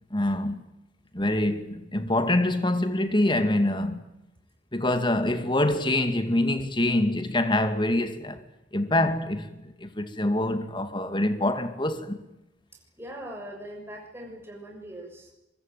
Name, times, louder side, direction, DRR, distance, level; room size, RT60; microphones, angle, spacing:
voice 1, 0.1-0.6 1.1-4.0 4.7-8.4 8.7-12.2, left 1 dB, 25° left, 2.3 m, -25 dB
voice 2, 13.0-15.3, right 1 dB, 15° right, 6.7 m, -41 dB
23.5 x 22.5 x 9.3 m
head